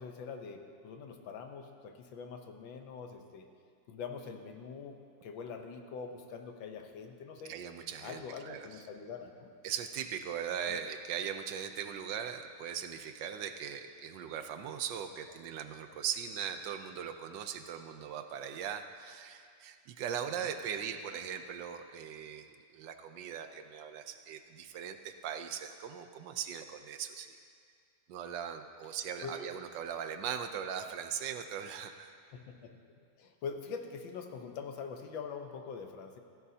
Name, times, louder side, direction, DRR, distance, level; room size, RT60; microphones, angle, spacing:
voice 1, 0.0-3.5 3.9-7.5 8.0-9.5 10.7-10.8 20.4-20.5 29.2-29.3 32.3-32.8 33.2-36.2, left 5 dB, 85° left, 5 dB, 1.6 m, -44 dB
voice 2, 7.4-8.7 9.6-27.4 28.1-32.2, right 8 dB, 75° right, 8 dB, 1.3 m, -39 dB
15.0 x 13.5 x 2.8 m, 2.3 s
omnidirectional pair, 2.0 m